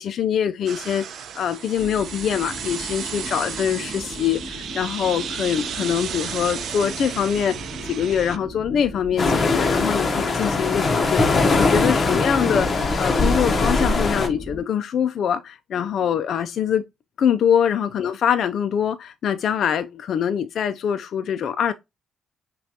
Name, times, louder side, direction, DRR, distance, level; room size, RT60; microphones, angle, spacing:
voice 1, 0.0-7.6 7.8-11.3 11.6-16.8 17.2-21.7, left 8 dB, 65° left, 0.3 m, -24 dB
sound 1, 0.7-8.4, right 8 dB, 65° right, 0.5 m, -33 dB
sound 2, 1.7-14.6, left 1 dB, 5° right, 2.3 m, -38 dB
sound 3, 9.2-14.3, left 3 dB, 35° left, 0.8 m, -21 dB
5.7 x 2.3 x 2.7 m
cardioid pair, 90°, 0 cm